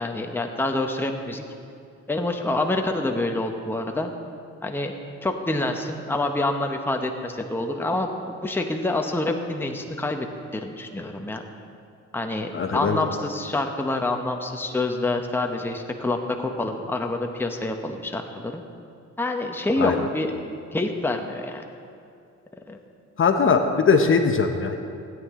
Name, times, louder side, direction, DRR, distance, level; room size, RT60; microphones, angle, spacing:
voice 1, 0.0-1.4 2.1-4.1 4.6-4.9 5.2-11.4 12.1-18.6 19.2-21.6 22.7-22.8, left 2 dB, 5° left, 3 dB, 0.9 m, -27 dB
voice 2, 12.5-13.0 19.8-20.0 23.2-24.8, left 5 dB, 45° left, 6 dB, 0.9 m, -20 dB
16.0 x 9.4 x 3.7 m, 2.5 s
cardioid pair, 90°, 30 cm